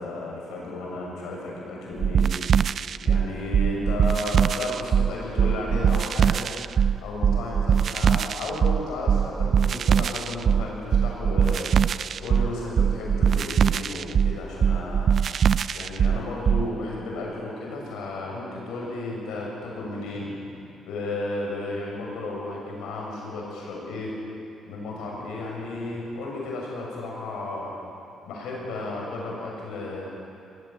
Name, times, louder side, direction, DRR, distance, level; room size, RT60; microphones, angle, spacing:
voice 1, 0.0-2.3 3.0-6.5 7.0-11.7 12.2-15.1 15.7-20.4 20.9-24.1 24.7-27.7 28.3-30.0, left 2 dB, 85° left, -2 dB, 7.1 m, -33 dB
sound 1, 2.0-16.7, right 7 dB, 55° right, 0.4 m, -22 dB
20.0 x 16.5 x 9.2 m, 2.7 s
cardioid pair, 90°, 0 cm